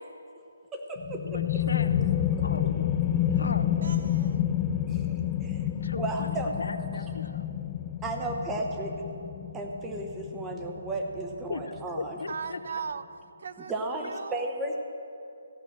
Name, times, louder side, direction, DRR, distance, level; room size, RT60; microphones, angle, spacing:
voice 1, 0.7-1.4 4.9-5.1 5.4-5.6 6.0-6.5 8.0-9.0 9.5-12.2 13.7-14.8, right 2 dB, 10° right, 2 dB, 0.8 m, -34 dB
sound 1, 1.0-12.3, left 11 dB, 20° left, 0.3 m, -29 dB
voice 2, 1.3-2.1 2.4-2.9 3.3-3.8 5.8-7.5 11.5-11.6 11.9-12.6, left 4 dB, 75° left, 10 dB, 0.7 m, -38 dB
sound 2, 1.9-8.8, equal, 75° right, 1.3 m, -45 dB
voice 3, 3.8-4.4 12.3-13.0 13.4-13.7 14.0-14.5, right 6 dB, 55° right, 14 dB, 0.4 m, -38 dB
15.0 x 5.5 x 7.6 m, 2.7 s
hypercardioid pair, 165°, 0 cm